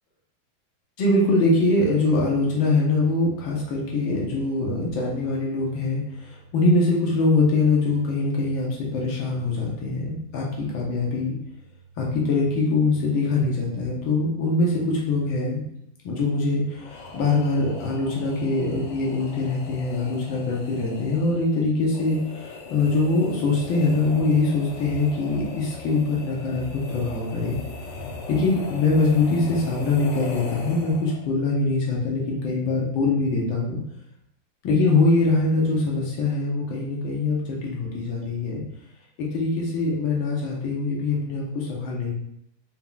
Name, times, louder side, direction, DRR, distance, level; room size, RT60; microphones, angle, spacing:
voice 1, 1.0-11.4 12.0-15.6 16.0-27.6 28.3-33.8 34.6-38.6 39.2-42.2, left 3 dB, 85° left, -3 dB, 1.7 m, -23 dB
sound 1, 16.8-31.3, left 3 dB, 70° left, 1.2 m, -39 dB
4.2 x 3.8 x 2.3 m, 0.76 s
omnidirectional pair, 2.1 m